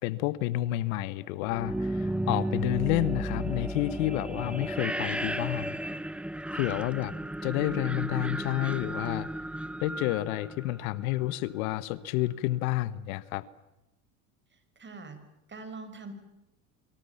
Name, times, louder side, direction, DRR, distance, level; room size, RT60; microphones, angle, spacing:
voice 1, 0.0-5.7 6.5-7.1 7.4-9.3 9.8-13.4, left 16 dB, 75° left, 1.4 m, -30 dB
sound 1, 1.4-11.3, right 1 dB, 5° right, 0.9 m, -34 dB
voice 2, 14.8-15.2 15.5-16.1, right 3 dB, 25° right, 6.4 m, -43 dB
28.5 x 25.0 x 7.2 m
supercardioid pair, 95°, 42 cm